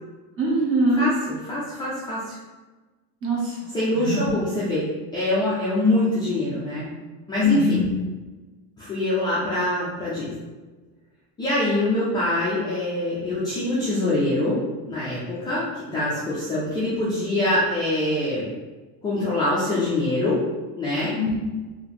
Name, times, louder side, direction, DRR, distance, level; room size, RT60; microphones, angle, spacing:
voice 1, 0.4-1.1 3.2-3.6 3.9-4.3 7.4-7.9 21.2-21.4, equal, 30° right, -4 dB, 1.1 m, -22 dB
voice 2, 1.5-2.4 3.7-6.9 7.3-7.8 8.8-10.3 11.4-14.6 14.9-18.5 19.0-20.4 20.8-21.1, left 1 dB, 10° left, -10 dB, 0.4 m, -24 dB
4.7 x 2.7 x 3.4 m, 1.2 s
cardioid pair, 180°, 40 cm